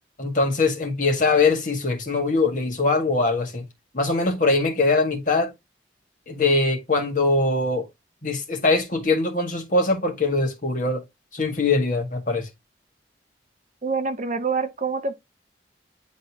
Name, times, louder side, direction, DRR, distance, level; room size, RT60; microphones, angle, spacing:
voice 1, 0.2-3.6 3.9-5.5 6.3-7.9 8.2-11.0 11.3-12.5, left 3 dB, 45° left, 1.6 m, -22 dB
voice 2, 13.8-15.1, right 4 dB, 40° right, 0.8 m, -26 dB
9.5 x 3.9 x 2.9 m
head